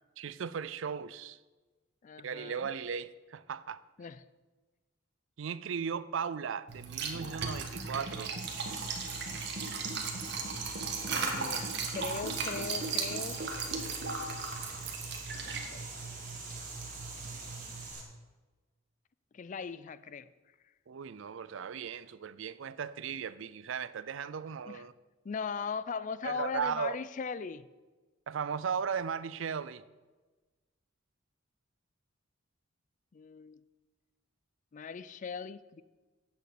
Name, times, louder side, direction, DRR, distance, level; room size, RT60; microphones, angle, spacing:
voice 1, 0.2-1.4 2.2-3.8 5.4-8.3 9.3-9.5 10.6-10.7 20.9-24.9 26.2-27.0 28.3-29.8, right 7 dB, 75° right, 0.4 m, -37 dB
voice 2, 2.0-2.7 4.0-4.2 11.1-13.4 15.4-15.9 19.3-20.3 24.7-24.8 25.2-27.7 33.1-33.6 34.7-35.8, left 5 dB, 40° left, 0.4 m, -39 dB
Liquid, 6.7-17.9, right 4 dB, 60° right, 1.5 m, -37 dB
sound 1, 8.4-18.0, right 4 dB, 40° right, 2.3 m, -44 dB
8.1 x 6.6 x 7.7 m
head